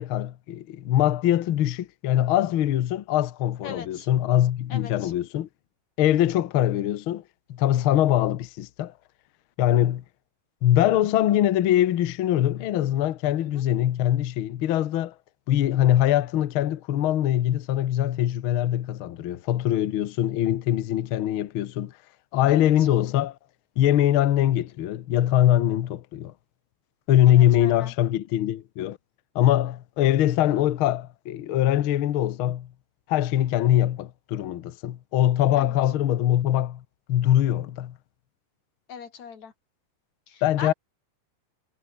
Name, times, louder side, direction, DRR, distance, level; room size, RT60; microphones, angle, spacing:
voice 1, 0.0-5.5 6.0-7.2 7.5-8.9 9.6-10.0 10.6-15.1 15.5-21.9 22.3-23.3 23.8-26.3 27.1-29.0 29.3-32.7 33.1-36.8 37.1-37.9 40.4-40.7, left 12 dB, 85° left, 1.1 m, -22 dB
voice 2, 3.6-4.1 4.7-5.1 13.4-13.6 22.5-22.9 27.3-27.9 35.6-35.7 38.9-39.5 40.3-40.7, left 7 dB, 55° left, 4.1 m, -40 dB
omnidirectional pair, 3.8 m